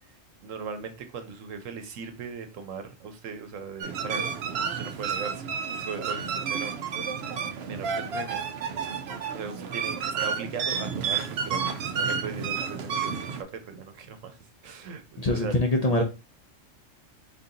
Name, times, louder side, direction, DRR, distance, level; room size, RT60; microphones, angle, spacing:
voice 1, 0.4-4.4 4.7-5.5 5.8-6.8 7.7-8.4 9.0-14.4 14.6-15.6, right 5 dB, 80° right, 1.2 m, -39 dB
sound 1, 3.8-13.4, right 6 dB, 60° right, 0.8 m, -31 dB
voice 2, 15.2-16.0, left 1 dB, 40° left, 0.7 m, -23 dB
4.2 x 3.8 x 2.7 m
omnidirectional pair, 1.3 m